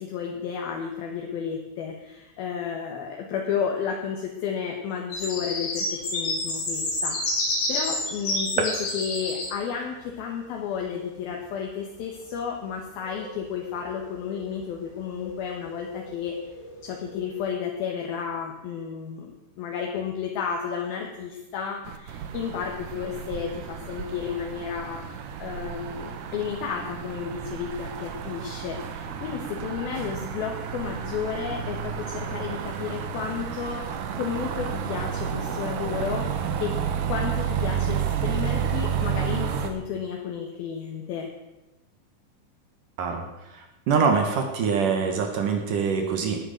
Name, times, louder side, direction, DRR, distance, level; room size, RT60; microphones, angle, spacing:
voice 1, 0.0-7.2 7.4-16.4 16.8-33.8 34.1-36.8 37.1-41.3, left 7 dB, 65° left, 1 dB, 2.8 m, -32 dB
sound 1, 5.1-9.5 13.0-13.9 14.2-14.6 15.2-15.4 15.7-17.4, left 2 dB, 85° left, 8.5 m, -30 dB
sound 2, 21.8-39.7, right 8 dB, 80° right, 1.8 m, -31 dB
voice 2, 43.5-46.4, right 5 dB, 65° right, 4 dB, 2.2 m, -24 dB
19.0 x 9.8 x 6.6 m, 1.0 s
omnidirectional pair, 5.6 m